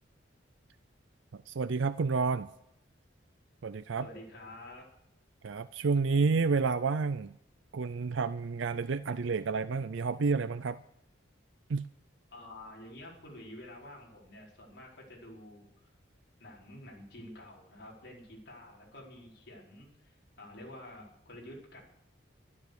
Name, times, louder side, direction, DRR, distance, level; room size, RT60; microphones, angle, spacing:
voice 1, 1.3-2.5 3.6-4.1 5.4-7.3 7.7-10.8 11.7-11.8, right 4 dB, 75° right, 13 dB, 0.5 m, -30 dB
voice 2, 4.0-4.8 12.3-15.9 16.4-21.8, left 1 dB, 60° left, -3 dB, 4.8 m, -49 dB
12.5 x 12.0 x 6.6 m, 0.79 s
head